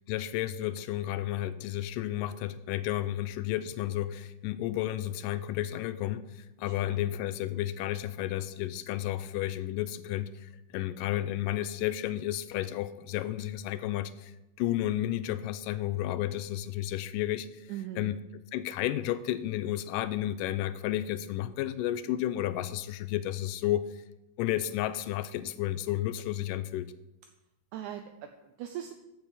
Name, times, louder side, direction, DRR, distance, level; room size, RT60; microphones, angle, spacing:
voice 1, 0.1-14.3 14.6-17.7 18.0-18.1 18.5-24.0 24.4-26.9, left 13 dB, 80° left, 13 dB, 2.0 m, -32 dB
voice 2, 6.7-7.1 17.7-18.1 27.7-28.9, right 11 dB, 80° right, 7 dB, 1.8 m, -40 dB
8.2 x 6.8 x 7.4 m, 0.95 s
omnidirectional pair, 3.9 m